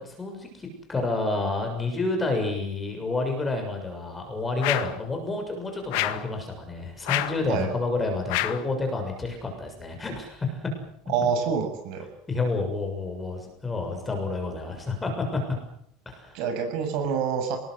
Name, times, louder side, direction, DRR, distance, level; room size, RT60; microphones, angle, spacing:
voice 1, 0.0-10.6 12.3-15.4 16.0-16.4, left 3 dB, 10° left, 4 dB, 6.8 m, -29 dB
sound 1, 4.6-5.0 5.9-6.3 7.1-7.4 8.3-8.7, left 17 dB, 65° left, 1.9 m, -28 dB
voice 2, 11.1-12.1 16.3-17.6, right 6 dB, 50° right, 6 dB, 7.5 m, -27 dB
28.0 x 20.5 x 8.0 m, 0.67 s
cardioid pair, 175°, 0 cm